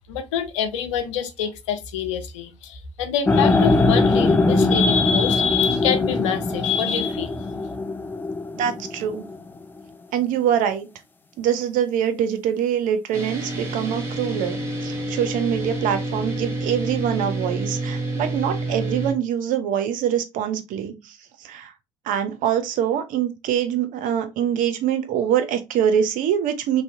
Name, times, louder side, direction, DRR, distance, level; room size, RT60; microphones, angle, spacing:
voice 1, 0.1-7.5, left 7 dB, 80° left, 0.5 m, -25 dB
sound 1, 3.3-9.4, left 3 dB, 15° left, 0.4 m, -21 dB
voice 2, 8.6-9.3 10.1-10.9 11.4-21.2 21.4-21.7 22.1-26.8, right 9 dB, 60° right, 0.5 m, -24 dB
sound 2, 13.1-19.1, right 2 dB, 15° right, 1.2 m, -28 dB
2.6 x 2.0 x 2.5 m
hypercardioid pair, 60°, 16 cm